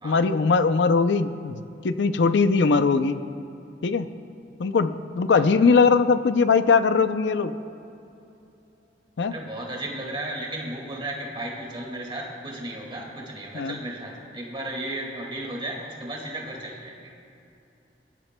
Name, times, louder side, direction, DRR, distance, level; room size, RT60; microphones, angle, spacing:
voice 1, 0.0-3.2 3.8-4.1 4.6-7.5 9.2-9.3 13.5-13.8, left 4 dB, 75° left, 11 dB, 0.5 m, -20 dB
voice 2, 9.3-17.0, right 1 dB, 30° right, -1 dB, 2.0 m, -34 dB
22.5 x 12.0 x 2.2 m, 2.8 s
head